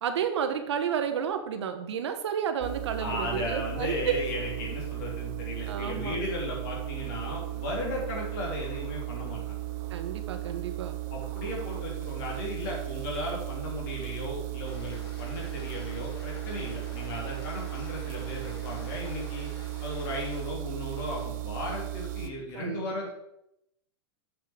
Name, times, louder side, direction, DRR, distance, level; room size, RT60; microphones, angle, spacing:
voice 1, 0.0-4.0 5.7-6.2 9.9-11.0 22.5-22.8, right 7 dB, 80° right, 7 dB, 1.1 m, -31 dB
sound 1, 2.6-22.3, right 15 dB, 30° right, 0.5 m, -36 dB
voice 2, 3.0-9.4 11.1-19.5 19.8-23.1, left 2 dB, 45° left, -2 dB, 3.2 m, -36 dB
sound 2, 14.6-20.4, left 2 dB, 65° left, 2.7 m, -48 dB
7.4 x 5.4 x 5.0 m, 0.83 s
supercardioid pair, 165°, 14 cm